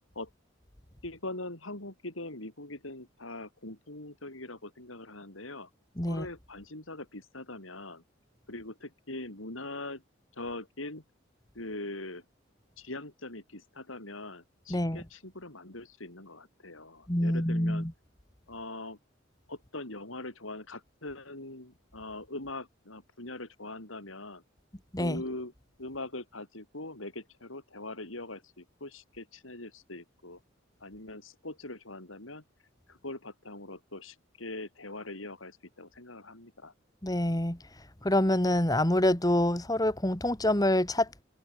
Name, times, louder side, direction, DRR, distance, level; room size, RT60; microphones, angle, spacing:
voice 1, 1.0-5.7 6.1-8.0 8.5-10.0 10.4-11.0 11.5-12.2 12.8-17.9 18.5-19.0 19.5-24.4 25.0-25.5 25.8-30.4 30.8-32.4 32.9-36.7, left 2 dB, 85° left, 6.1 m, -42 dB
voice 2, 14.7-15.0 17.1-17.9 24.9-25.2 37.0-37.6 38.0-41.2, left 1 dB, 20° left, 2.4 m, -26 dB
head